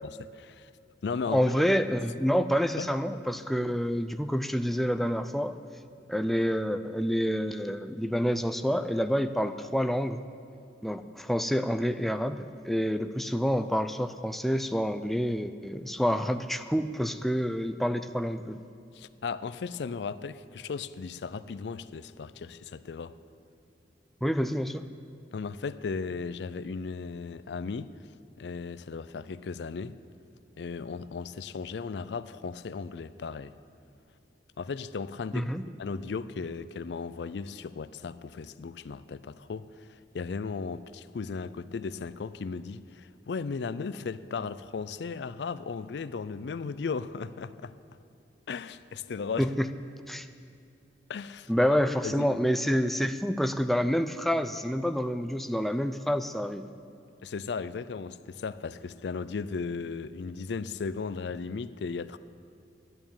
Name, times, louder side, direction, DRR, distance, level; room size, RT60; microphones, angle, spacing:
voice 1, 0.2-0.7 1.0-1.5 2.8-2.9 18.9-23.2 25.3-28.1 28.4-30.0 30.6-33.5 34.6-35.5 35.8-47.8 48.5-49.5 51.1-51.5 52.0-52.3 57.2-62.2, left 5 dB, 75° left, 0.4 m, -36 dB
voice 2, 1.3-5.6 6.1-10.2 10.8-18.6 24.2-24.9 35.3-35.6 49.4-49.7 50.1-50.3 51.5-56.7, equal, ahead, 0.3 m, -28 dB
11.0 x 9.5 x 8.8 m
head